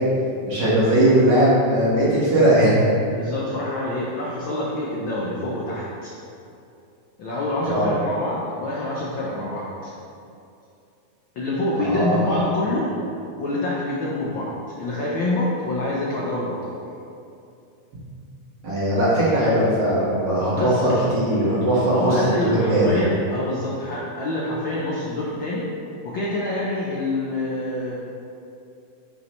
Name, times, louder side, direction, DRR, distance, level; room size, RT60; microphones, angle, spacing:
voice 1, 0.5-2.9 7.6-7.9 11.8-12.4 18.6-22.2 22.7-23.0, right 1 dB, 40° right, -9 dB, 2.1 m, -19 dB
voice 2, 3.2-6.1 7.2-9.7 11.3-13.0 13.4-14.5 14.8-16.7 20.5-20.9 21.9-25.7 26.0-28.0, left 1 dB, 85° left, -5 dB, 1.0 m, -26 dB
9.8 x 5.5 x 3.1 m, 2.6 s
omnidirectional pair, 3.4 m